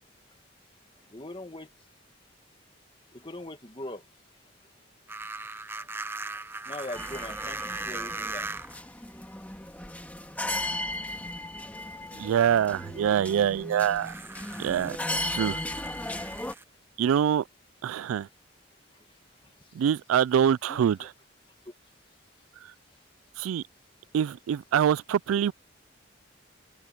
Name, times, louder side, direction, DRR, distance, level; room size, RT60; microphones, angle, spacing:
voice 1, 1.1-1.7 3.2-4.0 6.7-7.6 7.9-8.5 20.7-21.1, left 1 dB, 25° left, 2.1 m, -40 dB
sound 1, 5.1-8.8 9.8-9.9 14.0-16.6, right 3 dB, 10° right, 0.5 m, -38 dB
sound 2, 6.9-16.5, left 1 dB, 10° left, 1.9 m, -36 dB
voice 2, 12.2-14.1 14.6-15.6 17.0-17.4 17.8-18.3 19.7-21.1 23.4-23.6 24.1-25.5, right 9 dB, 90° right, 0.3 m, -25 dB
open air
head